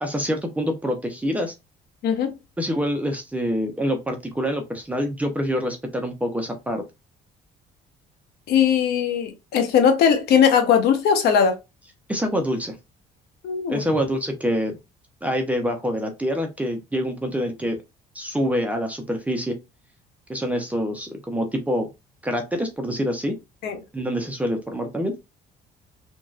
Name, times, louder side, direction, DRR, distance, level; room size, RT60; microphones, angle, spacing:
voice 1, 0.0-1.5 2.6-6.8 12.1-12.8 13.7-14.8 15.2-17.8 18.1-19.6 20.3-21.9 22.2-23.3 23.9-25.1, equal, 10° right, 0.6 m, -26 dB
voice 2, 8.5-11.6 13.4-13.8 23.6-23.8, left 7 dB, 75° left, 0.8 m, -19 dB
3.0 x 2.7 x 2.3 m
cardioid pair, 110°, 17 cm